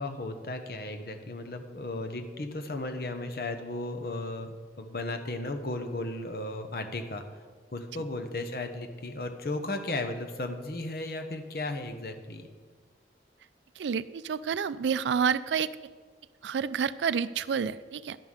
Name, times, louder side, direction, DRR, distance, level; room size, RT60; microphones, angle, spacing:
voice 1, 0.0-7.2 7.7-12.5, left 2 dB, 55° left, 6 dB, 0.9 m, -35 dB
voice 2, 13.8-15.7 16.4-18.2, right 6 dB, 85° right, 16 dB, 0.4 m, -29 dB
10.5 x 5.6 x 6.4 m, 1.5 s
head